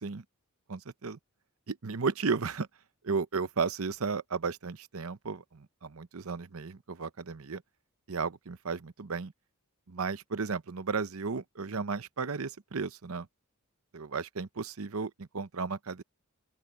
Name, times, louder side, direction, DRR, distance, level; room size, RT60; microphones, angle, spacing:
voice 1, 0.7-1.2 1.7-2.7 3.0-7.6 8.1-9.3 9.9-13.3 13.9-16.0, right 4 dB, 70° right, 0.8 m, -34 dB
open air
head